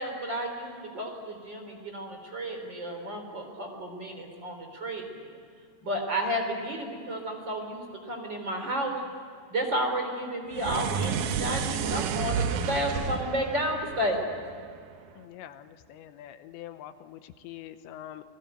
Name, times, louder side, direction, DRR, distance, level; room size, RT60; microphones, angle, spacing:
voice 1, 0.0-5.4 5.8-9.0 9.5-14.2, equal, 25° right, 3 dB, 3.8 m, -32 dB
sound 1, 10.5-14.9, right 7 dB, 80° right, 1.8 m, -31 dB
voice 2, 15.2-18.2, left 12 dB, 80° left, 10 dB, 3.0 m, -44 dB
28.5 x 20.0 x 9.2 m, 2.3 s
omnidirectional pair, 5.2 m